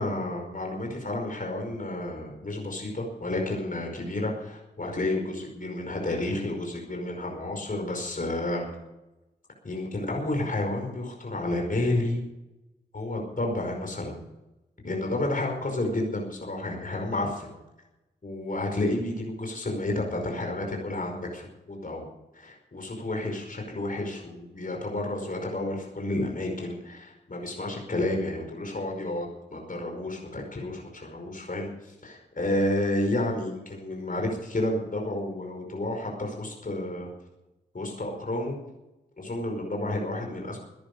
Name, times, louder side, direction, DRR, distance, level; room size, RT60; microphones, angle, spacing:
voice 1, 0.0-8.7 9.6-12.2 12.9-14.2 14.8-17.5 18.2-37.1 37.7-38.6 39.2-40.6, left 1 dB, 50° left, 2 dB, 5.1 m, -31 dB
16.5 x 10.5 x 6.9 m, 0.97 s
cardioid pair, 45°, 18 cm